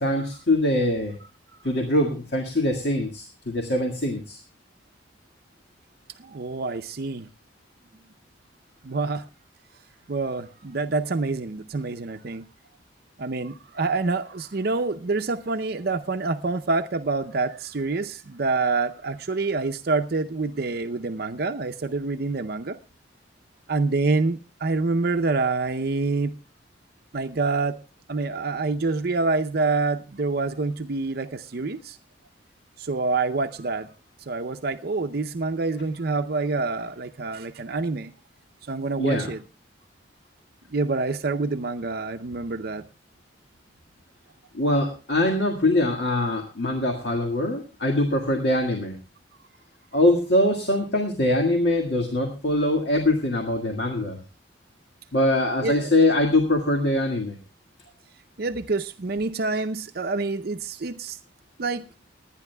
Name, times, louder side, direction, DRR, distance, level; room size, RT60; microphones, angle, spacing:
voice 1, 0.0-1.2 1.6-4.4 39.0-39.3 44.5-49.0 49.9-54.2 55.1-57.4, left 1 dB, 65° left, 1.8 m, -23 dB
voice 2, 6.2-7.3 8.8-9.2 10.1-12.5 13.2-22.8 23.7-26.4 27.1-27.8 28.1-32.0 32.8-33.9 34.3-38.1 38.7-39.4 40.7-42.8 55.6-55.9 58.4-61.2 61.6-61.8, right 3 dB, 55° right, 0.6 m, -27 dB
29.5 x 9.9 x 2.2 m
head